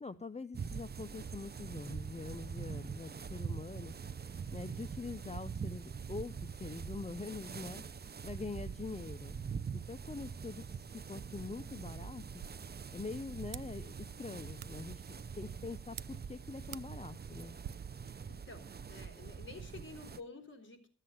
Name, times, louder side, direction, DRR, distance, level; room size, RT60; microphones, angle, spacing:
voice 1, 0.0-9.4 9.7-12.5 12.9-17.6, left 4 dB, 20° left, 10 dB, 0.6 m, -45 dB
sound 1, 0.5-20.2, right 6 dB, 30° right, 0.5 m, -44 dB
sound 2, 12.2-17.7, right 11 dB, 80° right, 0.5 m, -52 dB
voice 2, 18.3-20.9, left 3 dB, 35° left, 3 dB, 3.5 m, -50 dB
14.0 x 7.6 x 7.7 m, 0.44 s
wide cardioid pair, 95°, 32 cm